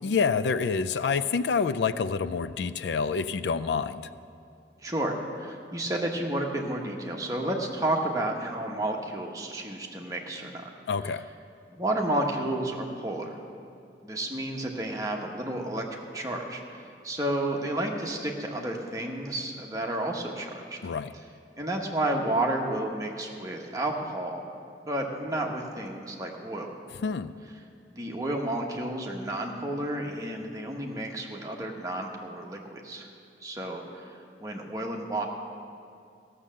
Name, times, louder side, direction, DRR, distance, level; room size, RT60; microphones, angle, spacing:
voice 1, 0.0-4.1 10.9-11.2 20.8-21.1 27.0-27.3, left 5 dB, 80° left, 15 dB, 0.4 m, -27 dB
voice 2, 4.8-10.7 11.7-13.3 14.0-15.8 16.1-16.6 17.0-20.8 21.6-24.4 24.9-26.7 27.9-33.1 33.4-35.2, right 1 dB, 20° right, 0 dB, 1.1 m, -31 dB
15.0 x 6.7 x 7.4 m, 2.5 s
head